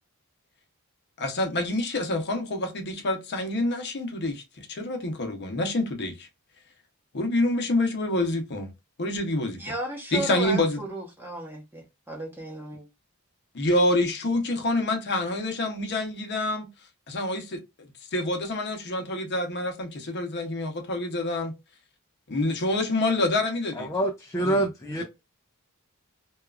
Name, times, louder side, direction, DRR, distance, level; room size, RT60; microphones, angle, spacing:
voice 1, 1.2-6.3 7.1-8.7 9.0-9.6 10.1-10.8 13.5-16.7 17.1-17.6 18.1-21.5 22.3-23.9 24.4-24.7 25.0-25.1, left 1 dB, 50° left, 0.7 m, -27 dB
voice 2, 9.6-12.9, right 2 dB, 10° right, 0.8 m, -34 dB
voice 3, 23.8-25.0, right 1 dB, 15° left, 0.3 m, -26 dB
2.8 x 2.3 x 2.3 m
head